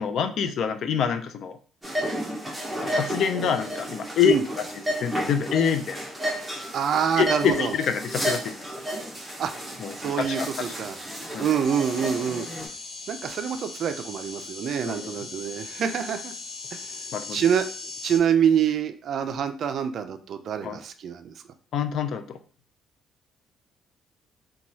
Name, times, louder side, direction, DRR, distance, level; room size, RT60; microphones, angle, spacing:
voice 1, 0.0-1.6 2.8-4.6 5.0-6.0 7.2-8.5 9.8-10.7 11.3-11.5 14.8-15.2 17.1-17.4 20.6-20.8 21.7-22.4, left 7 dB, 60° left, 9 dB, 0.3 m, -26 dB
sound 1, 1.8-12.7, equal, 5° right, 0.7 m, -32 dB
voice 2, 6.7-7.7 9.4-9.5 10.0-11.0 11.4-12.5 13.1-16.3 16.7-16.8 17.3-17.7 18.0-21.3, right 8 dB, 55° right, 8 dB, 0.3 m, -26 dB
sound 2, 11.6-18.2, left 3 dB, 85° left, 1.0 m, -39 dB
2.9 x 2.2 x 2.7 m, 0.40 s
cardioid pair, 130°, 0 cm